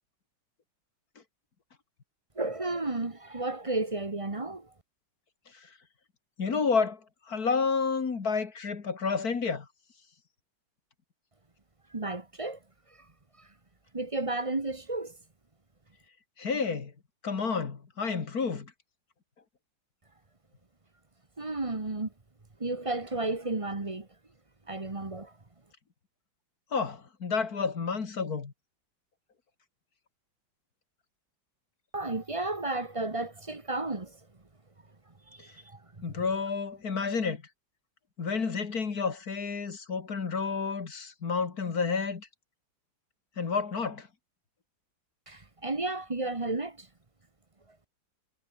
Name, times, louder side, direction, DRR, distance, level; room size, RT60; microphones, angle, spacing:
voice 1, 2.4-4.7 11.9-12.6 13.9-15.1 21.4-22.1 22.6-24.1 24.7-25.3 31.9-34.1 35.4-35.5 36.0-36.1 45.3-46.9, right 2 dB, 20° right, 1.3 m, -32 dB
voice 2, 6.4-7.0 7.3-9.7 16.4-16.9 17.2-18.7 26.7-28.5 36.0-37.4 38.2-42.3 43.4-44.1, left 5 dB, 50° left, 2.5 m, -30 dB
omnidirectional pair, 2.1 m